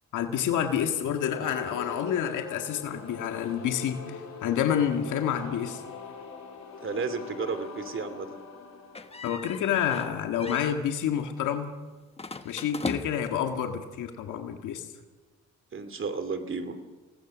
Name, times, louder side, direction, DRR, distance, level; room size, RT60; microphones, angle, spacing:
voice 1, 0.1-5.8 9.2-11.7 12.4-14.9, left 9 dB, 80° left, 5 dB, 1.9 m, -28 dB
sound 1, 1.0-9.9, left 5 dB, 60° left, 3.7 m, -43 dB
voice 2, 6.8-8.4 15.7-16.8, right 4 dB, 40° right, 10 dB, 2.7 m, -33 dB
sound 2, 8.9-10.1 10.4-10.8 12.2-13.4, left 3 dB, 20° left, 1.4 m, -37 dB
28.0 x 18.5 x 6.3 m, 1.3 s
cardioid pair, 90°, 30 cm